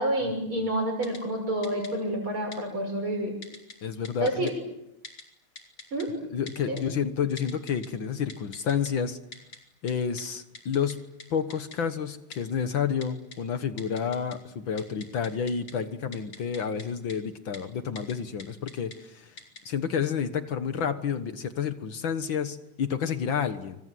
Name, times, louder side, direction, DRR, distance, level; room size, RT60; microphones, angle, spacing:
voice 1, 0.0-3.3 4.2-4.5 5.9-6.1 6.7-6.8, right 1 dB, 90° right, 4 dB, 7.4 m, -28 dB
Typing, 1.0-1.2 1.6-1.9 2.5-2.6 3.4-3.7 4.0-4.5 5.0-5.2 5.6-6.0 6.5-6.8 7.4-7.9 8.3-8.9 9.3-9.6 9.9-10.0 10.2-10.3 10.5-10.9 11.2-11.3 11.5-11.8 12.3-12.4 13.0-13.4 13.8-14.4 14.7-15.7 16.1-16.8 17.1-17.2 17.5-17.6 18.0-18.1 18.4-19.0 19.4-19.6, left 3 dB, 90° left, 5.0 m, -43 dB
voice 2, 3.8-4.5 6.3-9.2 9.8-11.0 11.3-19.4 19.7-23.8, left 7 dB, 70° left, 9 dB, 2.1 m, -30 dB
29.0 x 26.5 x 7.8 m, 0.85 s
omnidirectional pair, 2.2 m